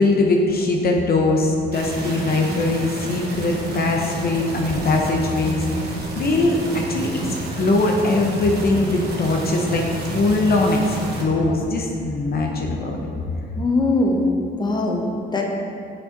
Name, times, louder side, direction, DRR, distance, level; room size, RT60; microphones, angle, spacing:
voice 1, 0.0-7.1 7.6-9.9 10.1-13.0, left 2 dB, 50° left, 1 dB, 0.8 m, -21 dB
sound 1, 1.7-11.2, right 1 dB, 55° right, 1.4 m, -29 dB
voice 2, 13.6-14.3 14.6-15.5, left 2 dB, 20° left, 0 dB, 0.9 m, -21 dB
7.1 x 5.4 x 3.9 m, 2.5 s
cardioid pair, 90°, 20 cm